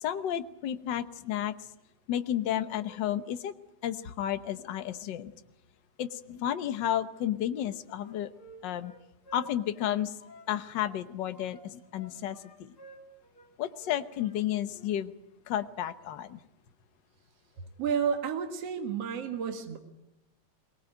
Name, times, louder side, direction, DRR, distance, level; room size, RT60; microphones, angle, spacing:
voice 1, 0.0-1.5 2.1-3.5 3.8-5.3 6.0-8.3 8.6-8.9 9.3-10.1 10.5-12.7 13.6-15.1 15.5-16.4, left 11 dB, 70° left, 11 dB, 1.1 m, -32 dB
Wind instrument woodwind instrument, 7.5-11.0 11.3-14.4 14.7-14.9, right 2 dB, 45° left, 3.7 m, -53 dB
voice 2, 17.8-19.8, right 7 dB, 60° right, 5 dB, 2.6 m, -31 dB
23.0 x 19.5 x 9.2 m, 0.88 s
omnidirectional pair, 3.4 m